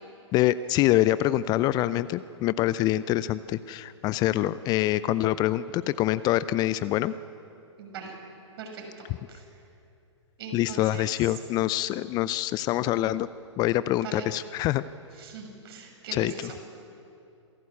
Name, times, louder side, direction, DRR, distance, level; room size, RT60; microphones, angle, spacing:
voice 1, 0.3-7.1 10.5-13.3 13.6-14.8 16.1-16.5, left 14 dB, 25° left, 16 dB, 0.5 m, -25 dB
voice 2, 7.8-8.1 8.6-9.4 10.4-11.3 14.0-14.3 15.2-16.6, right 5 dB, 55° right, 2 dB, 6.4 m, -41 dB
26.5 x 17.0 x 8.3 m, 2.7 s
figure-of-eight pair, 115°, 16 cm